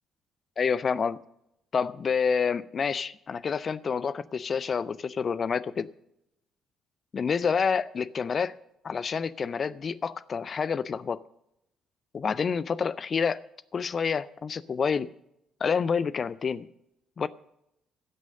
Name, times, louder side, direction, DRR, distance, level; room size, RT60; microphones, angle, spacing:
voice 1, 0.6-1.2 1.7-5.9 7.1-8.6 8.8-11.2 12.1-13.4 13.7-15.1 15.6-16.7 17.2-17.3, left 6 dB, 40° left, 0.5 m, -28 dB
16.5 x 6.3 x 6.6 m
figure-of-eight pair, 45°, 0 cm